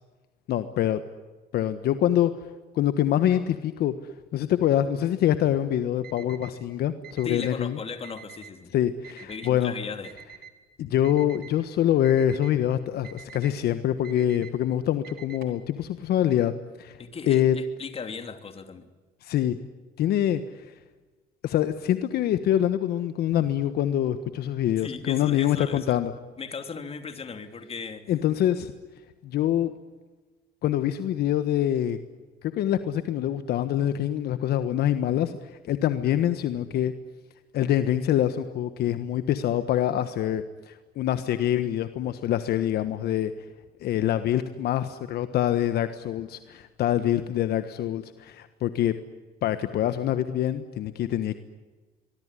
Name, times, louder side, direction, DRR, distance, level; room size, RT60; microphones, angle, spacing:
voice 1, 0.5-1.0 1.5-2.4 2.7-3.9 4.3-7.8 8.7-9.7 10.8-16.5 16.8-17.0 17.3-17.6 19.2-19.6 20.0-20.4 21.4-26.1 28.1-28.7 29.2-29.7 30.6-32.0 32.4-35.3 35.6-36.9 37.5-43.3 43.8-48.9 49.4-51.4, left 11 dB, 70° left, 11 dB, 1.4 m, -25 dB
Alarm, 6.0-6.5 7.0-7.5 8.0-8.5 9.0-9.5 10.0-10.5 11.0-11.5 12.0-12.5 13.0-13.5 14.0-14.5 15.0-15.6, right 8 dB, 70° right, 3.5 m, -46 dB
voice 2, 7.2-8.7 9.2-10.1 17.0-18.9 24.8-26.0 26.4-28.1, left 5 dB, 35° left, 8 dB, 3.1 m, -37 dB
24.5 x 21.5 x 10.0 m, 1.3 s
cardioid pair, 110°, 17 cm